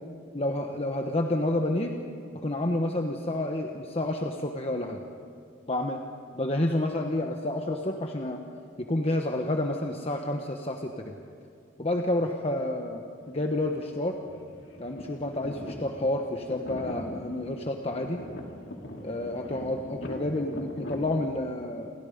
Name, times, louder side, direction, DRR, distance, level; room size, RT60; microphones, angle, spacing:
voice 1, 0.3-2.0 2.3-5.0 5.7-6.0 6.3-8.4 8.8-11.1 11.8-14.2 14.8-18.2 19.0-21.9, left 1 dB, 30° left, 3 dB, 1.2 m, -29 dB
sound 1, 13.2-13.8 14.1-21.3, left 1 dB, 65° left, 3.0 m, -41 dB
29.5 x 23.5 x 5.3 m, 2.4 s
head